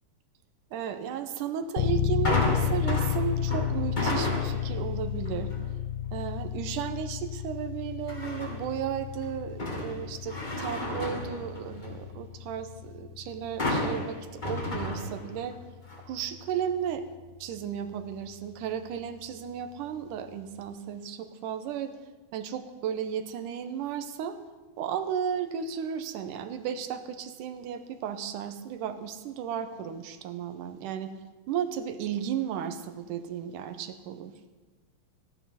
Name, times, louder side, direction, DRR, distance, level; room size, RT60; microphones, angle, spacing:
voice 1, 0.7-5.5 6.1-15.6 16.1-17.1 17.4-21.9 22.3-24.4 24.8-31.1 31.5-34.3, right 8 dB, 85° right, 9 dB, 2.4 m, -34 dB
sound 1, 1.8-18.5, left 10 dB, 85° left, 2.3 m, -33 dB
sound 2, 2.2-4.8 5.2-5.6 8.1-8.8 9.2-12.1 13.6-15.5 15.9-16.0, left 1 dB, 30° left, 0.8 m, -32 dB
15.0 x 11.5 x 5.7 m, 1.3 s
omnidirectional pair, 3.7 m